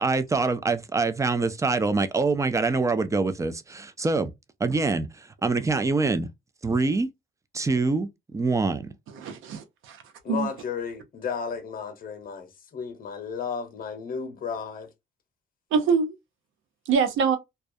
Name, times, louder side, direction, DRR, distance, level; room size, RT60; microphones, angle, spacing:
voice 1, 0.0-4.3 4.6-6.3 6.6-7.1 7.5-8.9, right 3 dB, 15° right, 0.4 m, -25 dB
voice 2, 9.1-10.5 15.7-16.1 16.9-17.4, right 5 dB, 85° right, 0.7 m, -25 dB
voice 3, 10.2-14.9, left 6 dB, 45° left, 0.8 m, -33 dB
2.3 x 2.1 x 2.6 m
cardioid pair, 90°, 20 cm